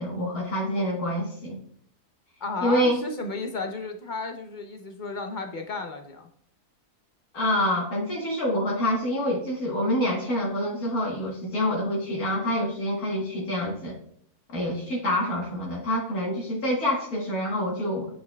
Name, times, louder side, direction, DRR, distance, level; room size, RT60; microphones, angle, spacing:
voice 1, 0.0-1.6 2.6-3.0 7.3-14.0 14.5-18.1, equal, 65° left, -3 dB, 1.8 m, -26 dB
voice 2, 2.4-6.3, left 3 dB, 50° left, 5 dB, 0.6 m, -33 dB
8.3 x 6.3 x 2.3 m, 0.62 s
omnidirectional pair, 1.7 m